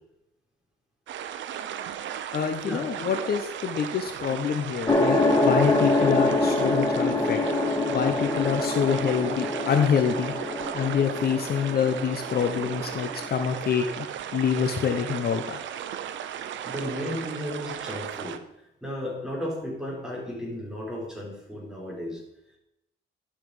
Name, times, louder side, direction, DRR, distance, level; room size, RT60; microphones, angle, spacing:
sound 1, 1.1-18.4, right 9 dB, 70° right, 0.7 m, -36 dB
voice 1, 2.3-7.4 7.9-10.3 10.7-14.1 14.3-15.6, left 7 dB, 50° left, 6 dB, 0.9 m, -26 dB
sound 2, 4.9-13.6, left 2 dB, 20° left, 1.4 m, -26 dB
voice 2, 16.4-18.4 18.8-22.2, left 1 dB, 5° right, -2 dB, 4.0 m, -34 dB
11.5 x 5.8 x 4.9 m, 0.86 s
cardioid pair, 90°, 20 cm